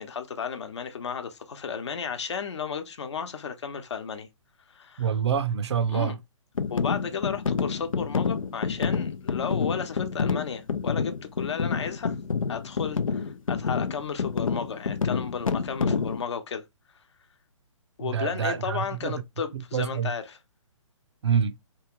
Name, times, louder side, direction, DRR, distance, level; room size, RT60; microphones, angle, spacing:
voice 1, 0.0-4.3 4.7-5.1 5.9-6.2 6.7-12.1 12.5-16.6 18.0-20.4, left 6 dB, 60° left, 0.8 m, -33 dB
voice 2, 5.0-6.2 18.0-19.2 19.5-20.1 21.2-21.6, right 7 dB, 55° right, 0.5 m, -27 dB
sound 1, 6.6-16.2, left 5 dB, 85° left, 0.5 m, -28 dB
3.1 x 2.4 x 2.9 m
figure-of-eight pair, 135°, 17 cm